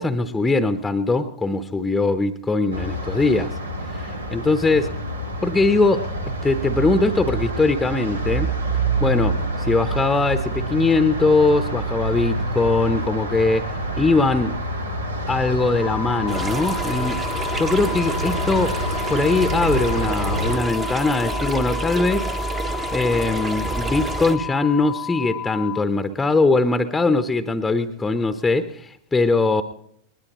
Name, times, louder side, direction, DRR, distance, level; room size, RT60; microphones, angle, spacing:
voice 1, 0.0-3.6 4.3-4.9 5.4-8.5 9.0-13.7 14.0-14.6 15.3-17.2 17.5-18.8 19.1-22.3 22.9-29.6, left 3 dB, 10° left, 10 dB, 0.8 m, -21 dB
sound 1, 2.7-20.6, right 1 dB, 80° right, 1.7 m, -27 dB
sound 2, 15.8-25.8, left 12 dB, 35° left, 0.5 m, -32 dB
sound 3, 16.3-24.4, right 4 dB, 20° right, 0.9 m, -29 dB
20.0 x 19.5 x 3.1 m, 0.69 s
figure-of-eight pair, 90°, 0 cm